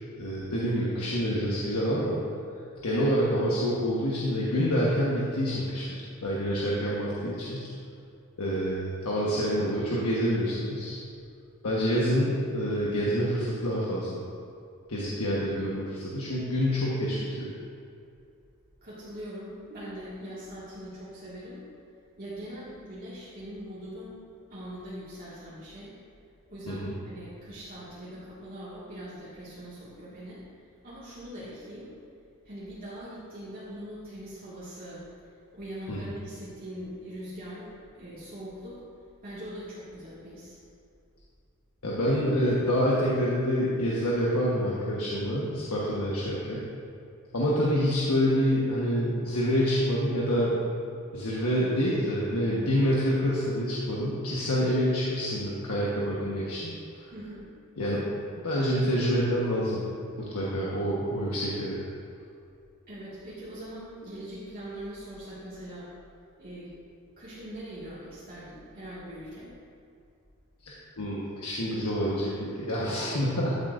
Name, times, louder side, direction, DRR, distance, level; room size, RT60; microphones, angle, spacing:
voice 1, 0.2-2.2 2.8-5.9 6.2-7.7 8.4-11.0 11.6-14.2 14.9-17.5 26.7-27.0 35.9-36.0 41.8-46.6 47.3-50.6 51.1-57.1 57.8-58.1 58.4-59.8 60.2-61.8 70.6-73.6, equal, 80° left, -6 dB, 1.2 m, -27 dB
voice 2, 18.8-21.6 22.2-24.2 24.5-26.0 26.5-30.4 30.8-31.9 32.5-35.0 35.5-38.8 39.2-40.6 57.1-57.5 62.9-65.9 66.4-66.7 67.2-69.5, equal, 40° right, -10 dB, 1.8 m, -42 dB
13.0 x 7.7 x 2.5 m, 2.5 s
head